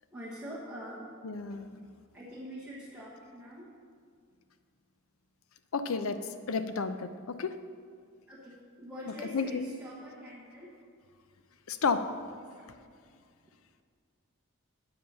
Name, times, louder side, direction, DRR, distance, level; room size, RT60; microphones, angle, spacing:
voice 1, 0.1-1.1 2.1-3.7 8.3-10.7 12.6-12.7, equal, 5° right, -8 dB, 1.2 m, -44 dB
voice 2, 1.2-1.7 5.7-6.2 6.5-7.5 9.3-9.6 11.7-12.1, left 4 dB, 75° left, 10 dB, 0.5 m, -31 dB
8.7 x 7.9 x 5.4 m, 2.2 s
head